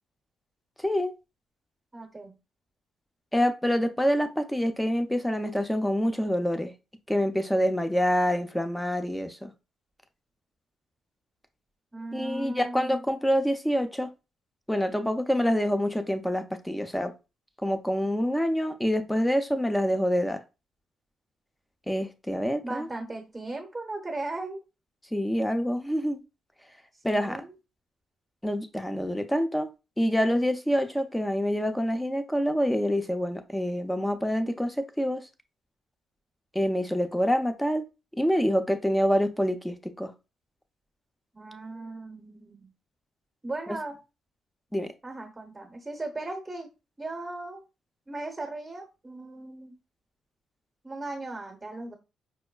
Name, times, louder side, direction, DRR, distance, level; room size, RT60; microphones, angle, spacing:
voice 1, 1.9-2.4 11.9-13.0 22.6-24.6 27.1-27.5 41.3-42.7 43.4-44.0 45.0-46.7 47.0-47.6 48.1-49.7 50.8-51.9, right 2 dB, 20° right, 0.9 m, -37 dB
voice 2, 3.3-6.7 7.1-9.5 12.1-14.1 14.7-17.1 17.6-20.4 21.9-22.9 25.1-26.2 27.0-27.4 28.4-29.7 30.0-35.2 36.5-37.8 38.2-40.1 43.7-43.8 44.7-44.9, equal, 5° left, 0.5 m, -26 dB
5.3 x 2.1 x 2.3 m
cardioid pair, 90°, 0 cm